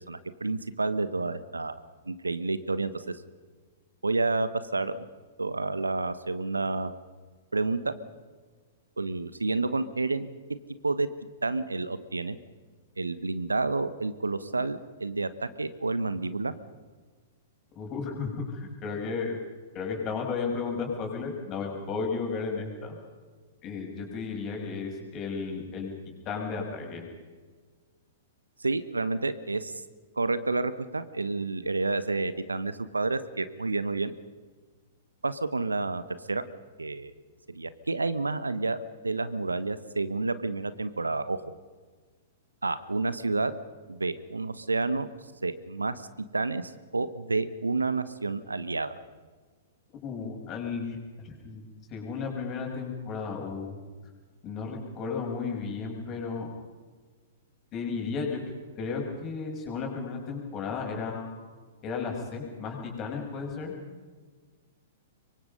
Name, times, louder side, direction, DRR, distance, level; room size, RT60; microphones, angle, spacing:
voice 1, 0.1-1.7 2.1-3.2 4.0-5.0 5.4-6.9 7.5-8.0 9.0-10.3 10.8-11.1 11.4-12.4 13.0-16.5 28.6-29.7 30.2-34.1 35.2-36.0 36.3-36.4 36.8-37.1 37.5-38.8 39.0-41.4 42.6-43.5 43.9-45.1 45.4-46.1 46.3-48.9, right 3 dB, 80° right, 14 dB, 1.2 m, -29 dB
voice 2, 17.7-19.3 19.7-22.9 23.6-25.9 26.2-27.0 50.0-53.8 54.4-56.5 57.7-58.4 58.8-61.3 61.8-63.7, left 5 dB, 30° left, 1 dB, 6.8 m, -34 dB
26.0 x 23.5 x 5.5 m, 1.4 s
figure-of-eight pair, 105°, 0 cm